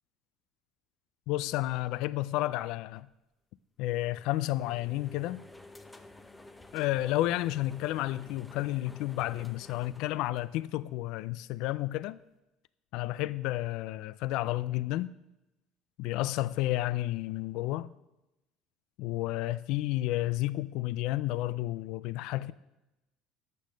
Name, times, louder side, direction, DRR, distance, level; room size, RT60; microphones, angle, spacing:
voice 1, 1.3-3.1 3.8-5.4 6.7-12.2 12.9-15.1 16.0-17.9 19.0-22.5, left 16 dB, 70° left, 0.3 m, -31 dB
sound 1, 3.8-11.1, left 2 dB, 10° left, 0.7 m, -52 dB
12.0 x 8.5 x 5.1 m
cardioid pair, 145°, 0 cm